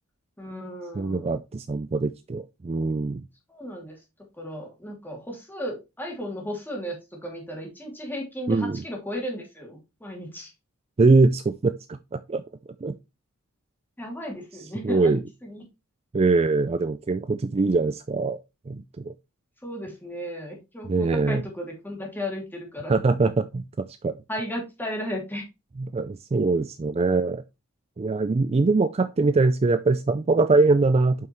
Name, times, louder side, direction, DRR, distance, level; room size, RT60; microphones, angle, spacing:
voice 1, 0.4-1.3 3.5-3.9 4.4-7.0 7.2-10.5 14.0-15.2 15.5-15.6 19.6-22.9 24.3-25.4, equal, 10° left, 2.7 m, -34 dB
voice 2, 0.9-3.2 8.5-8.8 11.0-12.4 12.8-12.9 14.5-15.2 16.1-18.4 18.7-19.1 20.8-21.4 22.9-24.1 25.8-27.4 28.0-31.3, right 3 dB, 30° right, 0.4 m, -23 dB
7.7 x 5.6 x 3.1 m
head